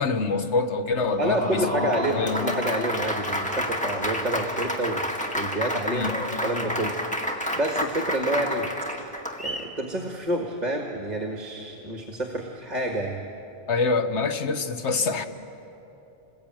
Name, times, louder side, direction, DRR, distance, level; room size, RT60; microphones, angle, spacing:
voice 1, 0.0-2.6 5.9-6.1 13.7-15.3, left 4 dB, 80° left, 1.6 m, -26 dB
Applause, 1.0-9.7, equal, 5° left, 1.9 m, -30 dB
voice 2, 1.2-5.1 5.3-6.1 6.4-6.9 7.5-8.7 8.9-13.2, right 1 dB, 40° right, 1.9 m, -28 dB
27.5 x 21.0 x 9.1 m
omnidirectional pair, 1.1 m